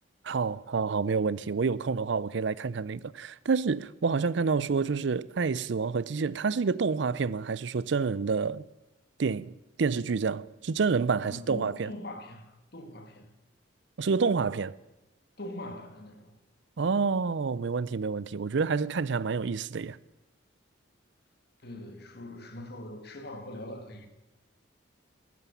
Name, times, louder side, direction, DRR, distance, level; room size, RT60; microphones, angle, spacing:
voice 1, 0.2-8.6 9.2-9.5 9.8-11.9 14.0-14.8 16.8-20.0, right 5 dB, 65° right, 0.5 m, -28 dB
voice 2, 11.2-13.3 15.4-16.4 21.6-24.1, left 1 dB, 55° left, 1.8 m, -42 dB
13.0 x 10.5 x 6.9 m
head